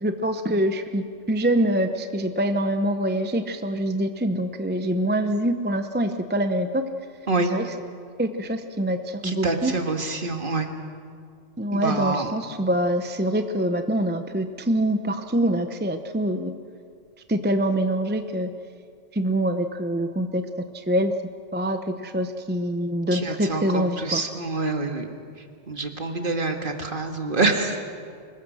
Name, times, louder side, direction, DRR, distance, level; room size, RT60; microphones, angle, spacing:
voice 1, 0.0-6.8 7.4-7.6 8.2-9.7 11.6-16.5 17.3-18.5 19.1-20.4 20.7-21.1 21.5-24.2, right 1 dB, 10° right, 8 dB, 0.7 m, -25 dB
voice 2, 9.2-10.7 11.7-12.3 23.1-25.1 25.7-27.8, right 3 dB, 45° right, 5 dB, 1.9 m, -26 dB
25.0 x 21.0 x 6.3 m, 2.3 s
omnidirectional pair, 1.3 m